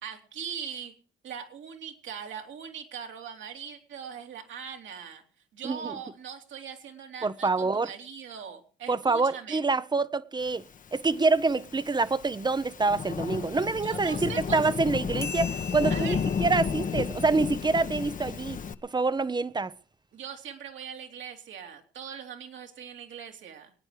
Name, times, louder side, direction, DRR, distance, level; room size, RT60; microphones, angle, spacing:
voice 1, 0.0-0.9 1.2-5.2 5.5-9.6 13.8-14.6 15.9-16.2 20.1-23.7, right 7 dB, 70° right, 3.0 m, -41 dB
voice 2, 5.6-6.0 7.2-7.9 8.9-10.6 10.9-19.7, right 3 dB, 20° right, 0.8 m, -26 dB
Thunderstorm / Rain, 11.0-18.7, left 6 dB, 40° left, 1.0 m, -32 dB
sound 1, 15.2-18.3, left 5 dB, 15° left, 1.0 m, -42 dB
24.0 x 9.5 x 4.8 m
cardioid pair, 90°, 20 cm